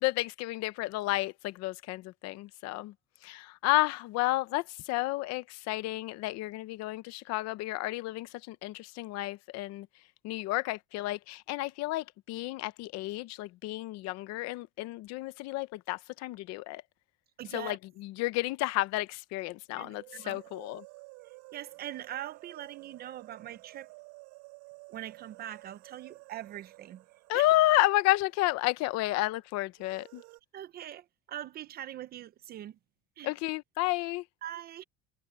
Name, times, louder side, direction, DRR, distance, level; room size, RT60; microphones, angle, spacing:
voice 1, 0.0-2.9 3.2-9.9 10.2-16.8 17.5-20.8 27.3-30.2 33.2-34.2, left 18 dB, 55° left, 0.8 m, -31 dB
voice 2, 17.4-17.8 19.8-20.4 21.2-23.9 24.9-27.0 27.3-27.5 30.5-32.8 33.2-33.3 34.4-34.8, right 12 dB, 30° right, 0.5 m, -42 dB
sound 1, 19.9-28.8 29.0-29.1 29.8-30.4, right 30 dB, 85° right, 3.9 m, -53 dB
cardioid pair, 180°, 33 cm